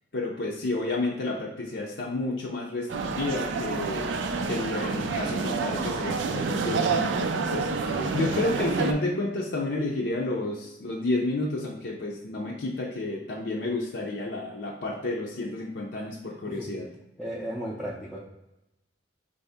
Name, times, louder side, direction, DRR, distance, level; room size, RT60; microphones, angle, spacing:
voice 1, 0.1-4.1 4.4-16.9, left 2 dB, 65° left, -3 dB, 0.5 m, -31 dB
sound 1, 2.9-8.9, right 4 dB, 85° right, 0.4 m, -28 dB
voice 2, 7.9-8.4 16.6-16.7 17.2-18.2, right 1 dB, ahead, -6 dB, 0.5 m, -35 dB
4.7 x 2.7 x 3.5 m, 0.91 s
head